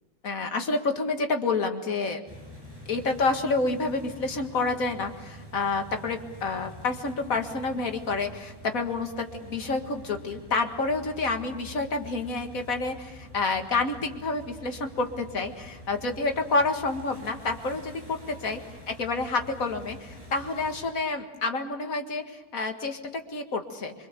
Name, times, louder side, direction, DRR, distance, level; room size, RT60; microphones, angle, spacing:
voice 1, 0.2-2.2 2.9-18.6 18.9-23.9, left 3 dB, 65° left, 5 dB, 2.3 m, -29 dB
sound 1, 2.3-20.9, equal, 15° right, 7.0 m, -46 dB
25.0 x 24.5 x 6.9 m, 1.1 s
omnidirectional pair, 1.6 m